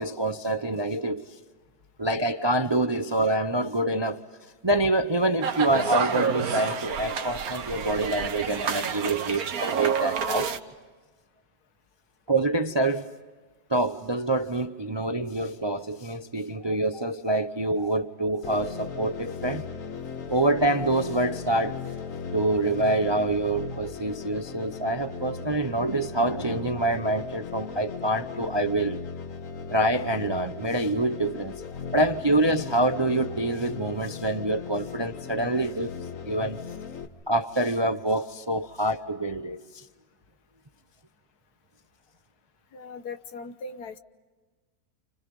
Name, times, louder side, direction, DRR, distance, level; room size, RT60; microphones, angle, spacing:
voice 1, 0.0-1.4 2.0-4.2 4.6-10.5 12.3-13.1 13.7-19.6 20.3-21.8 22.3-29.0 29.7-31.5 31.9-35.9 36.3-36.6 37.3-39.8, right 2 dB, 30° right, 0.5 m, -26 dB
sound 1, 5.4-10.6, right 6 dB, 65° right, 1.6 m, -29 dB
sound 2, 18.4-37.1, left 6 dB, 55° left, 1.5 m, -37 dB
voice 2, 42.7-44.0, left 4 dB, 75° left, 1.6 m, -39 dB
29.5 x 29.0 x 5.4 m
omnidirectional pair, 1.7 m